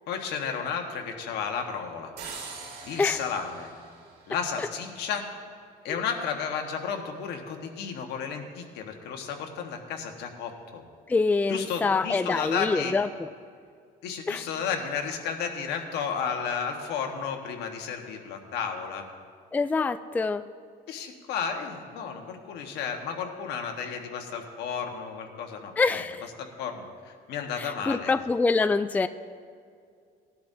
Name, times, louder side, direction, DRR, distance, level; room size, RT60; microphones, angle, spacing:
voice 1, 0.1-2.1 2.9-3.7 4.3-5.3 5.8-10.8 11.5-12.9 14.0-19.0 20.9-25.7 26.4-28.2, left 6 dB, 80° left, 3 dB, 1.5 m, -33 dB
sound 1, 2.2-5.0, right 4 dB, 80° right, 3.2 m, -43 dB
voice 2, 11.1-13.3 14.3-14.4 19.5-20.4 25.8-26.3 27.6-29.1, left 4 dB, 10° left, 12 dB, 0.3 m, -25 dB
19.5 x 11.5 x 2.8 m, 2.2 s
cardioid pair, 110°, 17 cm